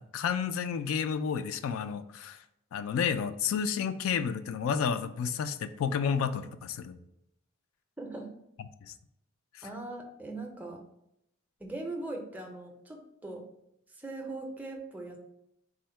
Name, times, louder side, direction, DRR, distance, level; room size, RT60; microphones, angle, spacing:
voice 1, 0.0-2.4 2.7-7.0 8.9-9.0 9.5-9.6, left 7 dB, 75° left, 11 dB, 0.3 m, -31 dB
voice 2, 8.0-8.3 9.6-10.8 11.6-13.5 13.9-15.2, right 2 dB, 10° right, 2 dB, 0.5 m, -40 dB
3.7 x 2.1 x 4.3 m, 0.80 s
head